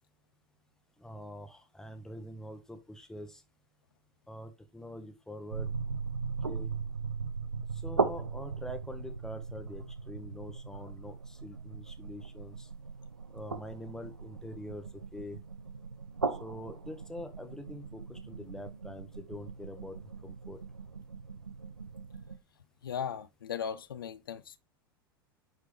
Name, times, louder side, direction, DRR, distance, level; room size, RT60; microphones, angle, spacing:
voice 1, 1.0-3.4 4.3-5.7 6.4-6.7 7.7-12.7 13.3-14.8 15.1-15.4 16.4-20.6, left 1 dB, 5° left, 1.2 m, -45 dB
sound 1, 5.5-22.4, right 4 dB, 80° right, 0.8 m, -38 dB
voice 2, 22.8-24.6, left 8 dB, 70° left, 0.7 m, -37 dB
9.5 x 4.9 x 3.3 m
figure-of-eight pair, 85°, 12 cm